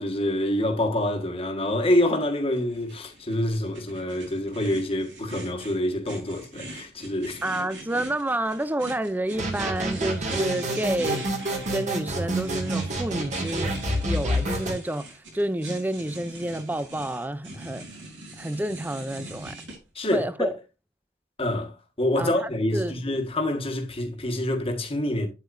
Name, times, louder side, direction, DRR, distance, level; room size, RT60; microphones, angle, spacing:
voice 1, 0.0-7.4 19.9-20.5 21.4-21.7 22.0-25.3, left 1 dB, 30° left, 1.7 m, -26 dB
sound 1, 2.5-19.8, right 2 dB, 80° right, 4.2 m, -42 dB
voice 2, 7.4-11.3 11.7-13.8 14.0-17.8 18.4-19.5 20.1-20.5 22.1-23.0, right 1 dB, 10° right, 0.6 m, -29 dB
sound 2, 9.3-14.7, right 1 dB, 40° right, 2.2 m, -28 dB
8.4 x 8.2 x 2.7 m
head